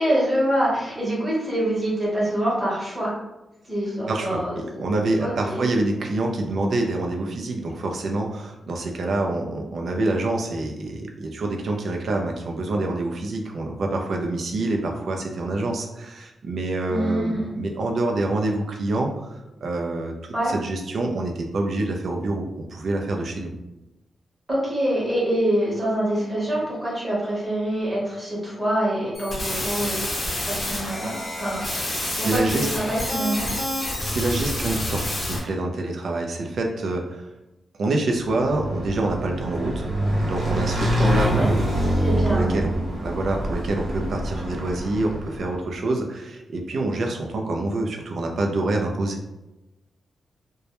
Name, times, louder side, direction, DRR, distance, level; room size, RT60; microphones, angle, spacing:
voice 1, 0.0-3.1 3.7-4.6 5.2-5.6 16.9-17.5 20.3-20.5 24.5-30.0 30.5-33.5 41.3-41.5 42.0-42.5, right 1 dB, 20° right, -6 dB, 0.9 m, -25 dB
voice 2, 4.1-20.1 20.5-23.5 31.9-32.7 34.0-37.3 37.8-39.9 40.2-41.6 42.3-42.8 43.0-49.2, right 2 dB, 55° right, 2 dB, 0.4 m, -26 dB
sound 1, 29.1-35.4, left 1 dB, 35° left, 0.6 m, -28 dB
Motorcycle / Engine, 38.2-45.6, equal, 75° right, 0.8 m, -25 dB
2.2 x 2.0 x 2.8 m, 0.97 s
wide cardioid pair, 170°, 0 cm